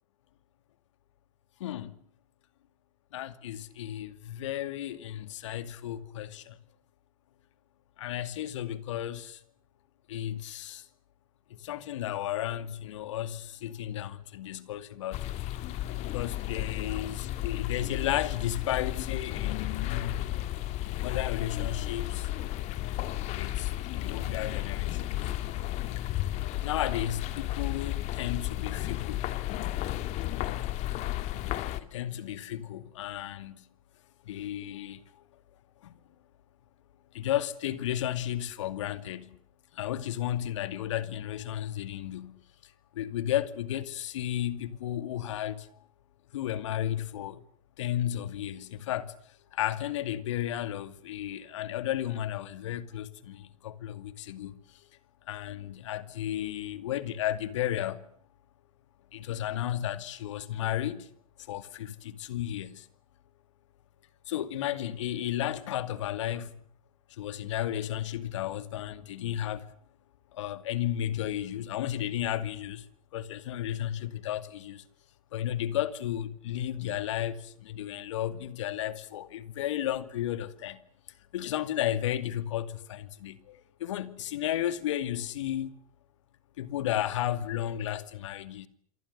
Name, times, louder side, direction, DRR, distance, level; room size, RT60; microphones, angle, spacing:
voice 1, 1.6-1.9 3.1-6.6 8.0-9.4 10.1-10.9 11.5-15.4 15.9-20.3 21.0-22.3 23.3-25.3 26.6-29.3 31.8-33.6 34.2-35.0 35.8-35.9 37.1-39.4 39.7-42.4 42.9-45.7 46.3-47.4 47.8-49.1 49.5-54.6 55.3-58.0 59.1-61.1 61.5-62.9 64.3-66.5 67.1-69.6 70.3-72.9 73.1-74.8 75.3-80.8 81.3-85.8 86.6-88.7, left 12 dB, 60° left, 2.3 m, -33 dB
sound 1, 15.1-31.8, left 15 dB, 40° left, 2.3 m, -33 dB
27.5 x 24.0 x 6.8 m
figure-of-eight pair, 90°, 17 cm